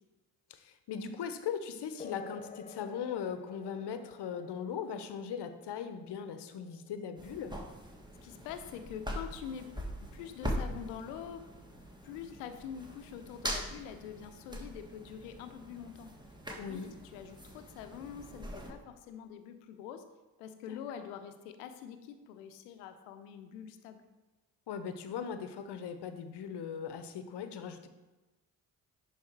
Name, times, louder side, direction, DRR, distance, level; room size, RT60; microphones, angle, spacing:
voice 1, 0.5-7.5 16.6-16.9 20.7-20.8 24.7-27.9, left 7 dB, 60° left, 9 dB, 0.9 m, -39 dB
sound 1, 2.0-10.0, left 6 dB, 15° left, 0.4 m, -53 dB
sound 2, 7.2-18.7, equal, 10° right, 1.5 m, -42 dB
voice 2, 8.2-9.7 10.1-11.4 12.0-16.1 16.5-16.8 17.1-20.0 20.4-24.1, left 8 dB, 85° left, 9 dB, 0.7 m, -45 dB
10.5 x 3.6 x 4.5 m, 1.2 s
hypercardioid pair, 40°, 46 cm